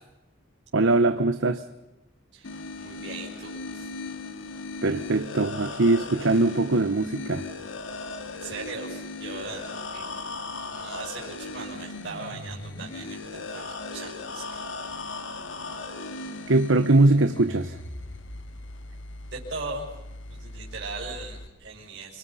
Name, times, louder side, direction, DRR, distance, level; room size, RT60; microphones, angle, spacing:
voice 1, 0.7-1.6 4.8-7.5 16.5-17.8, right 2 dB, 75° right, 9 dB, 1.0 m, -21 dB
sound 1, 2.4-21.5, left 3 dB, 75° left, 2.1 m, -38 dB
voice 2, 2.8-3.9 8.4-10.1 10.7-15.0 19.3-19.9 20.4-22.2, right 3 dB, 55° right, -4 dB, 6.0 m, -39 dB
29.5 x 24.5 x 5.7 m, 0.98 s
head